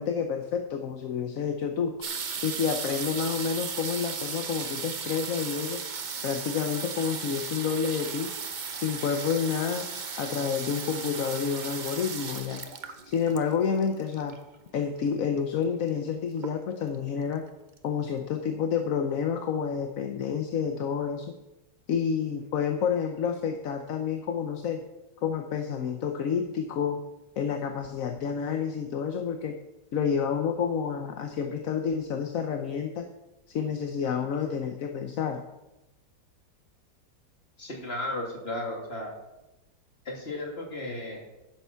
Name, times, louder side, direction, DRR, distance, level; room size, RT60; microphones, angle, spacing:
voice 1, 0.0-1.9 2.4-5.8 6.2-8.3 8.7-9.8 10.2-12.6 13.1-14.4 14.7-17.4 17.8-21.3 21.9-24.8 25.2-27.0 27.4-29.5 29.9-33.0 33.5-35.4, left 7 dB, 60° left, 5 dB, 1.1 m, -29 dB
sound 1, 2.0-14.5 15.4-15.5 15.7-16.1 16.4-16.9 17.5-17.6 17.8-17.9, right 5 dB, 45° right, 0.6 m, -36 dB
voice 2, 37.6-39.1 40.1-41.2, left 1 dB, 35° left, 0 dB, 2.4 m, -34 dB
11.0 x 8.0 x 5.7 m, 0.96 s
omnidirectional pair, 1.9 m